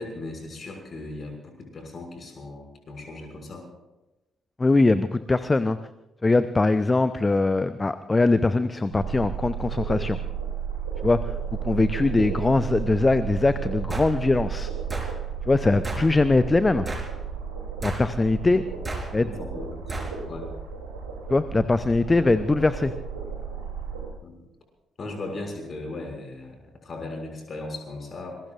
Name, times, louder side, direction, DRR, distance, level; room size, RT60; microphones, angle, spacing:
voice 1, 0.0-3.7 18.9-20.5 24.2-24.3 25.0-28.4, left 2 dB, 40° left, 2 dB, 6.3 m, -37 dB
voice 2, 4.6-5.8 6.2-10.2 11.0-11.2 11.6-14.7 15.5-16.9 17.8-18.6 19.1-19.3 21.3-22.9, left 3 dB, 25° left, 13 dB, 0.7 m, -21 dB
sound 1, 8.9-24.1, right 7 dB, 80° right, 3.0 m, -33 dB
sound 2, 13.9-14.1 14.9-15.1 15.8-16.1 16.9-17.1 17.8-18.1 18.8-19.1 19.9-20.1, right 2 dB, 25° right, 4.4 m, -32 dB
27.0 x 21.0 x 2.5 m, 0.99 s
figure-of-eight pair, 40°, 0 cm